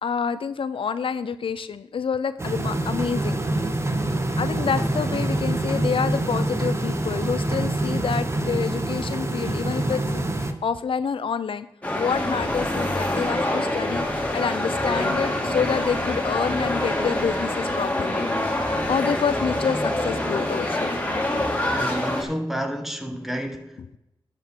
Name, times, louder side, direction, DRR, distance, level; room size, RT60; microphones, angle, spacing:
voice 1, 0.0-3.4 4.4-10.2 10.6-11.7 12.0-14.1 14.3-18.3 18.9-20.9 21.8-21.9, left 6 dB, 70° left, 0.4 m, -27 dB
sound 1, 2.4-10.5, right 1 dB, 30° right, 1.0 m, -25 dB
sound 2, 11.8-22.2, left 1 dB, 15° left, 2.1 m, -25 dB
voice 2, 21.7-24.0, equal, 5° right, 1.4 m, -30 dB
10.0 x 7.5 x 3.6 m
cardioid pair, 55°, 9 cm